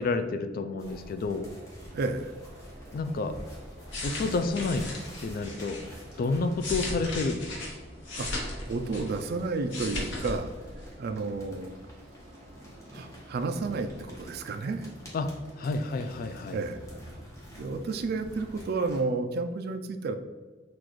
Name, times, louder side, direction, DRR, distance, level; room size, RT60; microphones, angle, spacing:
voice 1, 0.0-1.5 2.9-3.3 4.0-4.9 5.2-5.8 6.2-7.5 15.1-16.6, left 3 dB, 50° left, 9 dB, 0.3 m, -30 dB
sound 1, 0.8-7.4 8.6-19.0, equal, 15° left, 1.0 m, -49 dB
sound 2, 1.2-17.2, equal, 40° right, 1.2 m, -51 dB
voice 2, 1.9-2.3 8.2-8.4 8.7-10.5 11.0-11.8 12.9-14.9 16.5-16.8 17.5-20.1, right 3 dB, 55° right, 7 dB, 0.3 m, -31 dB
sound 3, 3.7-5.9 6.4-9.3 9.6-10.4 10.6-10.9, left 2 dB, 70° left, 1.1 m, -36 dB
6.0 x 2.4 x 3.1 m, 1.3 s
head